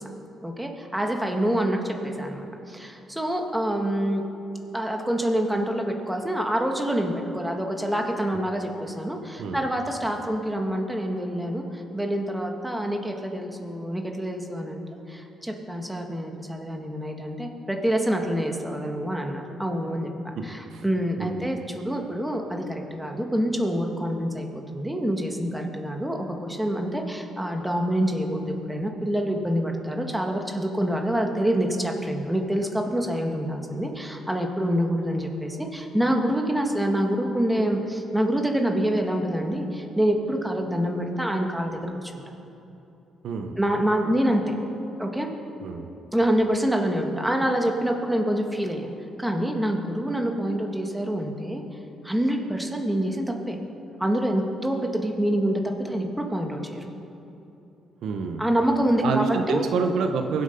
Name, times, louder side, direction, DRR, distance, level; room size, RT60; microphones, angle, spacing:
voice 1, 0.4-4.2 4.7-14.8 15.1-20.1 20.4-24.5 24.7-42.2 43.6-44.5 45.0-45.3 46.1-48.9 49.2-51.6 52.0-53.6 54.0-56.9 58.4-59.7, equal, 5° right, 2 dB, 1.9 m, -26 dB
voice 2, 21.2-21.5 43.2-43.6 45.6-45.9 58.0-58.5 59.0-60.4, right 5 dB, 75° right, 5 dB, 1.1 m, -27 dB
23.0 x 8.1 x 5.4 m, 3.0 s
cardioid pair, 90°, 0 cm